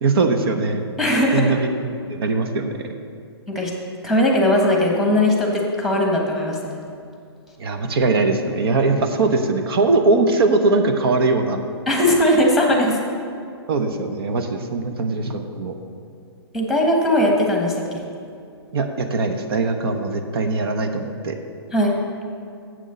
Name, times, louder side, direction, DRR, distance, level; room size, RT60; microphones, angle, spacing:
voice 1, 0.0-0.8 1.3-1.7 2.1-2.7 7.6-11.6 13.7-15.7 18.7-21.4, right 3 dB, 60° right, 6 dB, 0.9 m, -21 dB
voice 2, 1.0-1.5 3.5-3.7 4.0-6.8 11.9-13.0 16.5-18.0 21.7-22.0, left 1 dB, ahead, -1 dB, 1.3 m, -19 dB
7.7 x 6.2 x 6.8 m, 2.4 s
hypercardioid pair, 145°, 14 cm